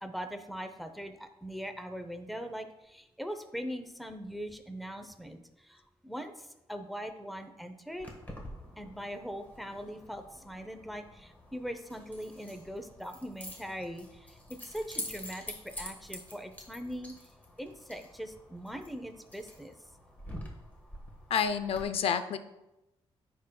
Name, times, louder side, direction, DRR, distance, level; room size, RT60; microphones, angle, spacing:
voice 1, 0.0-8.1 8.8-17.1 17.6-19.7, equal, ahead, 7 dB, 0.7 m, -41 dB
Keys jangling, 8.0-21.8, left 1 dB, 15° left, 1.4 m, -47 dB
voice 2, 21.3-22.4, left 7 dB, 70° left, 10 dB, 0.6 m, -29 dB
15.0 x 5.1 x 2.3 m, 0.95 s
cardioid pair, 125°, 10 cm